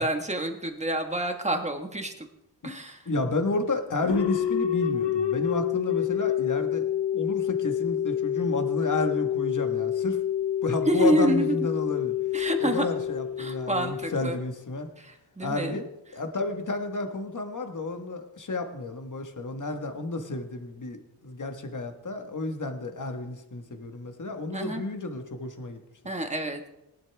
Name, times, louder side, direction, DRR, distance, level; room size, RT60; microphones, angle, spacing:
voice 1, 0.0-2.1 2.6-3.0 10.9-11.6 12.3-12.9 13.4-14.4 15.0-15.8 24.5-24.8 26.0-26.6, right 1 dB, 15° right, 4 dB, 1.6 m, -27 dB
voice 2, 3.0-6.9 7.1-10.2 10.6-12.1 12.6-14.9 15.4-15.9 16.1-25.8, left 2 dB, 45° left, 5 dB, 1.6 m, -31 dB
sound 1, 4.0-14.7, left 10 dB, 75° left, 1.0 m, -28 dB
19.0 x 11.5 x 3.5 m, 0.91 s
wide cardioid pair, 95°, 42 cm